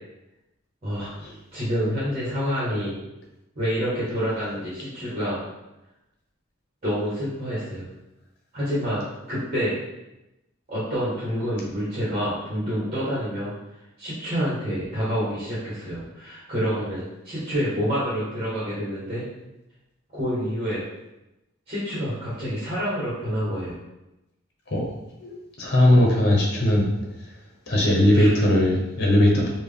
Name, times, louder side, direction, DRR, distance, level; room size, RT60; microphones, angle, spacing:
voice 1, 0.8-3.0 3.5-5.4 6.8-7.9 8.5-9.0 9.3-9.7 10.7-13.5 14.0-19.3 20.1-20.8 21.7-23.7 28.1-28.4, equal, 30° right, -9 dB, 1.5 m, -27 dB
voice 2, 25.2-26.9 27.7-29.5, left 1 dB, 55° left, -2 dB, 1.0 m, -19 dB
4.4 x 2.5 x 3.5 m, 0.95 s
head